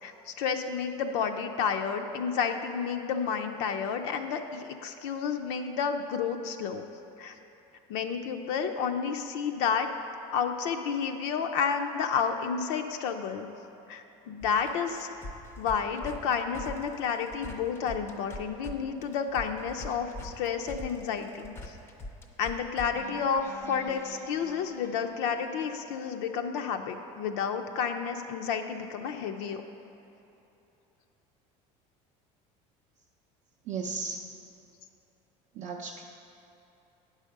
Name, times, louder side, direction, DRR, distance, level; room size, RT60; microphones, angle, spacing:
voice 1, 0.0-6.8 7.2-7.3 7.9-9.9 10.3-13.5 13.9-15.1 15.6-21.5 22.4-29.6, left 6 dB, 80° left, 5 dB, 0.6 m, -31 dB
sound 1, 14.4-18.7 19.0-26.2, left 1 dB, 15° left, 0.5 m, -44 dB
voice 2, 33.7-34.2 35.5-36.0, right 5 dB, 45° right, 0 dB, 0.5 m, -35 dB
9.3 x 4.9 x 6.5 m, 3.0 s
cardioid pair, 175°, 15 cm